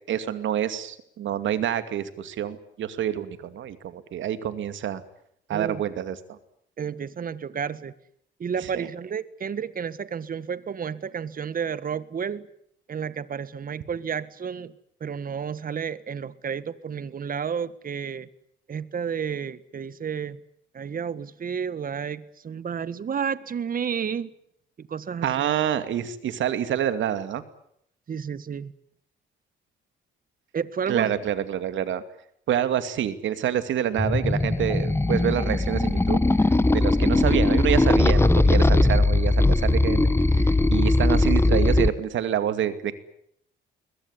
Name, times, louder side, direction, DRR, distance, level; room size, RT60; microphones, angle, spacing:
voice 1, 0.1-5.0 5.5-6.4 8.6-8.9 25.2-27.4 30.9-32.0 32.5-36.2 36.7-42.9, right 10 dB, 75° right, 12 dB, 2.5 m, -27 dB
voice 2, 5.5-5.8 6.8-7.9 8.4-12.5 12.9-14.7 15.0-18.3 18.7-20.4 20.7-24.3 24.8-25.5 28.1-28.7 30.5-31.1, right 7 dB, 45° right, 17 dB, 1.6 m, -31 dB
sound 1, 34.0-41.9, left 2 dB, 10° left, 1.3 m, -20 dB
22.0 x 21.0 x 10.0 m, 0.71 s
cardioid pair, 90°, 20 cm